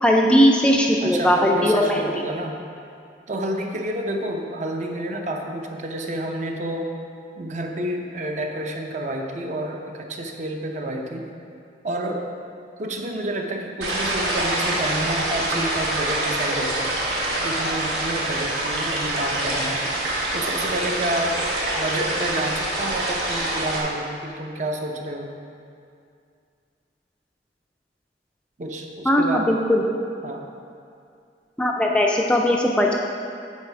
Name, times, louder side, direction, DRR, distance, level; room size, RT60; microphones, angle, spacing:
voice 1, 0.0-2.0 29.1-29.8 31.6-32.9, equal, 5° left, 0 dB, 0.3 m, -18 dB
voice 2, 1.0-2.6 3.3-6.9 7.4-11.3 11.8-12.3 12.8-16.9 17.4-19.8 20.3-21.4 21.8-25.3 28.6-29.5 30.2-30.5, right 1 dB, 45° right, 2 dB, 0.6 m, -29 dB
sound 1, 13.8-23.8, right 1 dB, 70° right, 1.3 m, -25 dB
8.3 x 4.1 x 4.7 m, 2.4 s
head